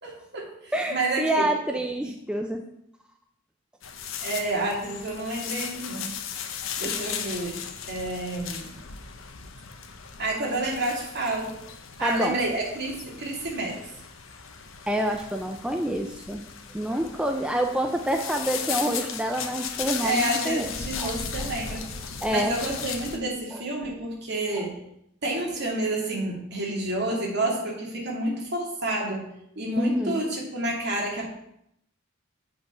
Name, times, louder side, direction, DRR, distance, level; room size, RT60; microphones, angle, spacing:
voice 1, 0.0-1.5 4.2-6.1 6.8-7.6 7.9-8.7 10.2-11.5 12.0-13.8 20.0-21.8 22.3-24.8 25.2-29.3 29.6-31.3, right 1 dB, 55° right, -2 dB, 2.4 m, -29 dB
voice 2, 0.7-2.6 6.8-6.9 12.0-12.4 14.9-16.4 16.7-21.8 22.2-22.5 23.5-23.6 24.5-24.7 29.7-30.2, right 1 dB, 5° right, 4 dB, 0.4 m, -28 dB
sound 1, 3.8-23.2, left 7 dB, 70° left, 0.9 m, -36 dB
8.1 x 5.2 x 5.5 m, 0.77 s
head